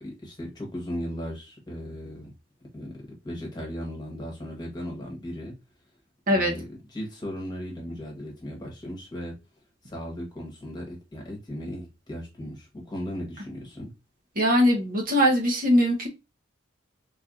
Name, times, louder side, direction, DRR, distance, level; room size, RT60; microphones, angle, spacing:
voice 1, 0.0-2.3 2.7-2.9 3.2-5.5 6.3-9.3 9.8-13.9, equal, 20° left, 1.3 m, -36 dB
voice 2, 14.4-16.1, equal, 45° right, 1.0 m, -21 dB
3.9 x 3.4 x 2.6 m
head